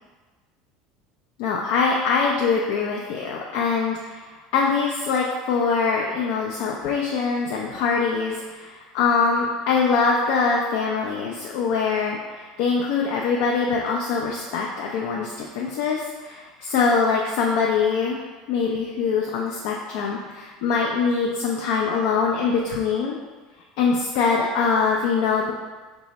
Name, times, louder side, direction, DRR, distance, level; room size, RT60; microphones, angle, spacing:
voice 1, 1.4-4.3 4.5-18.2 18.5-23.2 23.8-25.5, left 5 dB, 70° left, -1 dB, 0.3 m, -23 dB
2.6 x 2.1 x 4.0 m, 1.3 s
hypercardioid pair, 80°, 0 cm